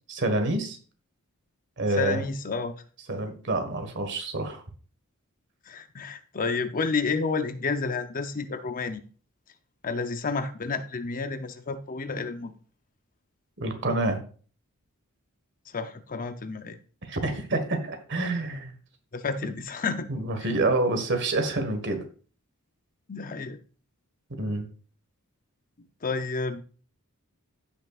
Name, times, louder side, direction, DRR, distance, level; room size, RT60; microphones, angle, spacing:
voice 1, 0.1-0.8 1.8-2.2 3.1-4.6 13.6-14.2 17.1-18.7 20.1-22.0 24.4-24.7, right 2 dB, 55° right, 6 dB, 1.5 m, -27 dB
voice 2, 1.9-2.8 5.7-9.0 9.8-12.5 15.7-16.8 19.1-20.1 20.4-20.5 23.1-23.6 25.8-26.6, left 4 dB, 40° left, 9 dB, 0.7 m, -30 dB
15.5 x 5.7 x 2.4 m, 0.40 s
head